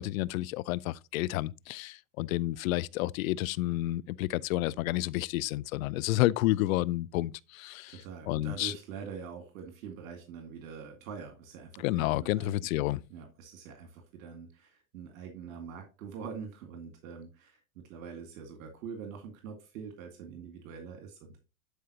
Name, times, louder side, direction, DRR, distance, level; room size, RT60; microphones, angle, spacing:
voice 1, 0.0-8.0 8.3-8.8 11.8-13.0, left 17 dB, 80° left, 0.6 m, -30 dB
voice 2, 7.9-12.5 13.1-17.6 17.9-21.4, right 6 dB, 75° right, 2.2 m, -44 dB
11.5 x 4.8 x 2.8 m
supercardioid pair, 115°, 41 cm